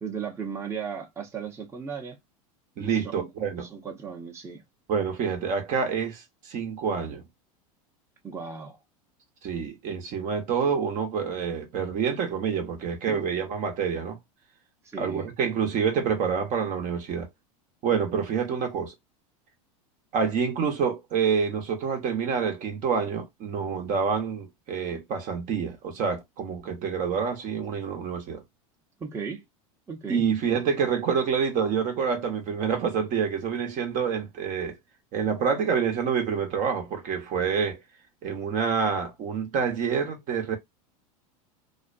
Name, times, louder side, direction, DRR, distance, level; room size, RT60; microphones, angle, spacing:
voice 1, 0.0-2.2 2.8-3.3 3.6-4.6 8.2-8.8 13.0-13.2 14.8-15.3 29.0-29.4 29.9-30.2, right 6 dB, 15° right, 0.7 m, -36 dB
voice 2, 2.8-3.7 4.9-7.2 9.4-14.2 15.0-17.3 17.8-18.9 20.1-28.4 30.1-34.8 35.1-37.8 38.2-40.6, right 6 dB, 45° right, 0.8 m, -27 dB
2.5 x 2.1 x 2.4 m
hypercardioid pair, 110°, 19 cm